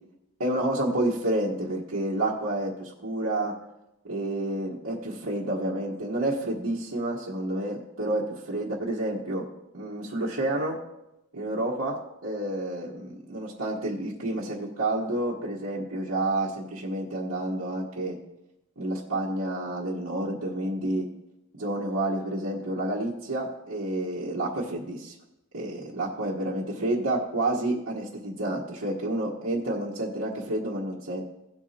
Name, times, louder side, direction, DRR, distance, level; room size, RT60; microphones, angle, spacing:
voice 1, 0.4-3.5 4.0-9.4 9.7-10.8 11.3-12.0 12.2-18.2 18.8-21.1 21.5-25.1 25.5-31.2, right 1 dB, 90° right, -7 dB, 1.5 m, -29 dB
17.5 x 8.2 x 2.9 m, 0.90 s
head